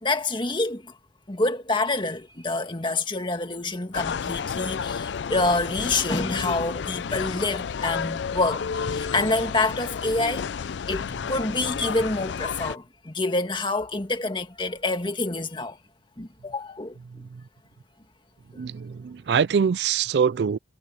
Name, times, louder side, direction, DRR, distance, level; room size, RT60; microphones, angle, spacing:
voice 1, 0.0-0.9 1.3-8.6 8.9-10.5 10.9-15.8 16.2-17.0, left 2 dB, 30° left, 1.9 m, -27 dB
sound 1, 3.9-12.8, left 6 dB, 90° left, 0.4 m, -31 dB
voice 2, 17.1-17.4 18.6-20.6, right 6 dB, 70° right, 0.4 m, -24 dB
head